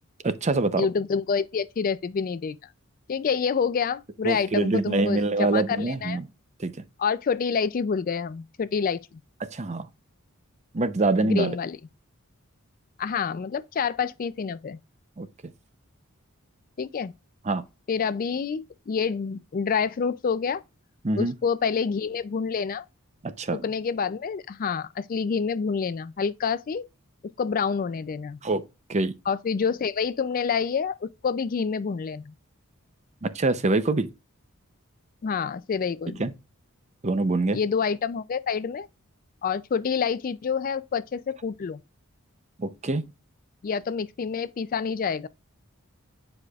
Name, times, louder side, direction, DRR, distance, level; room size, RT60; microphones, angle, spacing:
voice 1, 0.2-0.9 4.2-6.3 6.6-6.7 9.4-9.9 10.7-11.5 15.2-15.3 17.4-17.6 21.0-21.3 23.2-23.6 28.4-28.6 28.9-29.1 33.2-34.1 36.2-36.3 37.0-37.6 42.6-43.1, right 2 dB, 30° right, 0.6 m, -25 dB
voice 2, 0.8-2.6 3.1-6.2 7.0-9.2 11.2-11.8 13.0-14.8 16.8-17.1 17.9-20.6 21.2-22.8 23.5-26.9 27.4-28.4 29.3-32.3 35.2-36.3 37.5-38.9 39.4-41.8 43.6-45.3, left 6 dB, 40° left, 0.4 m, -27 dB
9.6 x 4.9 x 2.4 m
head